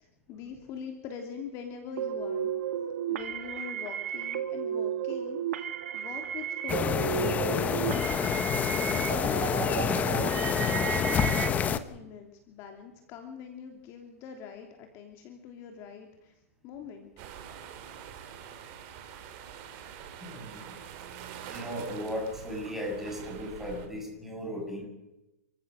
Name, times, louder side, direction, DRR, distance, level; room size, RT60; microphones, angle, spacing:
voice 1, 0.0-2.5 3.1-7.1 7.5-16.3 16.6-17.1, left 7 dB, 35° left, 4 dB, 3.1 m, -44 dB
sound 1, 2.0-11.5, right 9 dB, 70° right, 2.2 m, -33 dB
sound 2, 6.7-11.8, left 7 dB, 20° left, 1.2 m, -27 dB
sound 3, 17.2-23.9, right 8 dB, 40° right, 4.2 m, -45 dB
voice 2, 20.2-20.8 21.5-24.9, equal, 5° right, 0 dB, 7.9 m, -36 dB
29.5 x 15.5 x 6.5 m, 0.95 s
hypercardioid pair, 140°, 8 cm